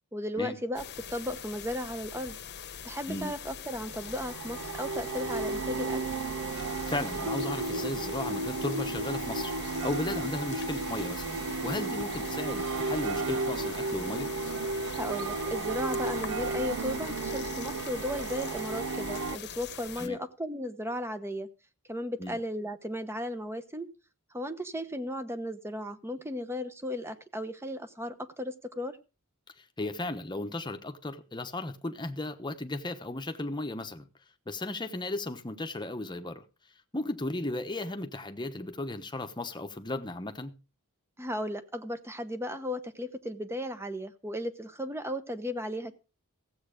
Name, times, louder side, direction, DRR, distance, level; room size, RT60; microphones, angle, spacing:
voice 1, 0.1-0.8 1.1-2.4 2.8-6.0 14.9-21.5 21.9-23.9 24.3-29.0 41.2-45.9, left 1 dB, 10° right, 0.9 m, -35 dB
sound 1, 0.8-20.1, left 8 dB, 50° left, 1.1 m, -43 dB
sound 2, 3.9-19.4, right 3 dB, 65° right, 0.6 m, -33 dB
voice 2, 6.9-9.6 9.8-11.4 11.6-14.3 20.0-20.2 22.2-22.4 29.8-34.1 34.5-36.4 36.9-40.5, left 2 dB, 20° left, 1.0 m, -35 dB
15.5 x 7.9 x 5.1 m
head